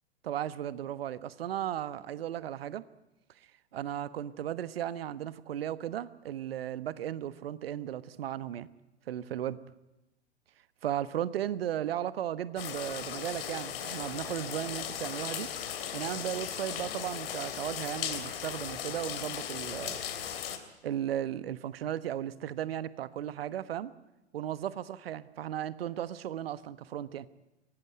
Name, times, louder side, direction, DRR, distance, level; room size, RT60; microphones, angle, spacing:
voice 1, 0.2-2.8 3.7-8.7 9.1-9.6 10.8-15.5 15.9-20.0 20.8-23.9 24.3-27.3, right 11 dB, 60° right, 16 dB, 1.3 m, -35 dB
sound 1, 12.6-20.6, left 9 dB, 55° left, 3.3 m, -37 dB
24.0 x 18.0 x 9.3 m, 0.95 s
figure-of-eight pair, 100°, 34 cm